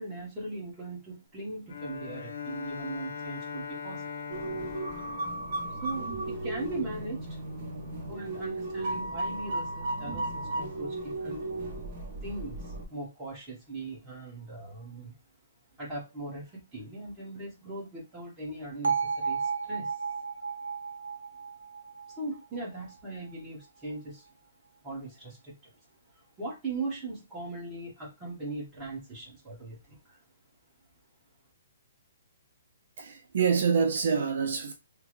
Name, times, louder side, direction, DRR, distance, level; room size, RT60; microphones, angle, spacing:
voice 1, 0.0-4.4 5.8-7.4 8.1-11.4 12.2-15.1 15.8-20.0 22.2-24.3 24.8-25.7 26.1-30.2, right 2 dB, 10° right, 1.3 m, -39 dB
Bowed string instrument, 1.7-6.8, left 6 dB, 60° left, 0.5 m, -41 dB
sound 1, 4.3-12.9, right 2 dB, 30° right, 0.9 m, -35 dB
Bell, 18.8-22.9, right 5 dB, 90° right, 0.7 m, -33 dB
voice 2, 33.0-34.7, right 6 dB, 60° right, 0.4 m, -26 dB
3.3 x 2.1 x 3.1 m
hypercardioid pair, 165°, 0 cm